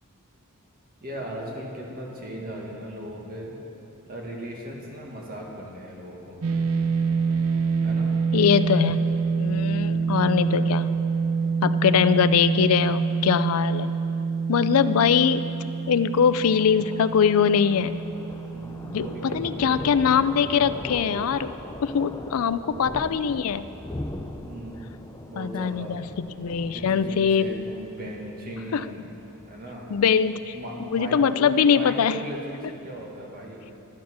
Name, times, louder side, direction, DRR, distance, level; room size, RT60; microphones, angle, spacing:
voice 1, 1.0-3.6 4.1-6.4 7.8-8.1 18.5-19.9 22.5-23.0 24.4-24.9 25.3-25.9 26.7-29.1 29.5-29.9 30.5-33.6, equal, 40° right, -2 dB, 1.9 m, -38 dB
sound 1, 6.4-20.8, right 5 dB, 70° right, 0.6 m, -27 dB
voice 2, 8.3-9.0 9.4-11.0 11.6-14.0 14.5-15.5 15.9-18.0 18.8-21.5 21.8-23.7 25.4-27.5 28.7-28.8 29.9-30.5 30.9-32.2, left 7 dB, 75° left, 14 dB, 0.4 m, -22 dB
Thunder, 15.0-31.9, left 1 dB, 15° left, 0.6 m, -41 dB
12.0 x 9.4 x 6.2 m, 2.9 s
head